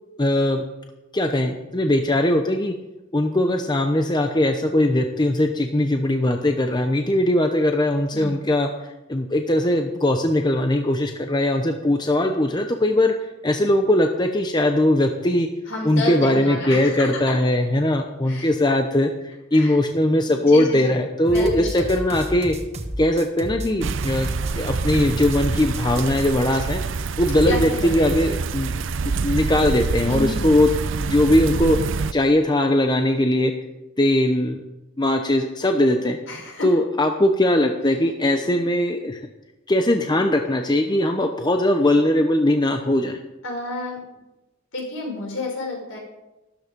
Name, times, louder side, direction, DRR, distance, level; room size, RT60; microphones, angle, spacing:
voice 1, 0.2-0.6 1.1-2.7 3.1-8.7 9.1-13.1 13.4-15.5 15.8-22.6 23.0-24.3 24.6-26.8 27.2-28.7 29.2-30.7 31.0-31.8 32.1-33.5 34.0-34.6 35.0-36.2 36.6-39.2 39.7-43.2, left 1 dB, 20° left, 5 dB, 0.8 m, -20 dB
voice 2, 15.7-17.2 18.3-18.5 19.5-19.8 20.4-20.9 21.3-22.0 27.4-28.3 30.0-30.5 36.3-36.7 43.4-44.0 44.7-46.0, left 2 dB, 70° left, -1 dB, 5.9 m, -30 dB
sound 1, 21.3-26.2, right 1 dB, 30° right, 1.4 m, -32 dB
sound 2, 23.8-32.1, right 4 dB, 60° right, 0.5 m, -26 dB
13.0 x 13.0 x 5.3 m, 1.0 s
head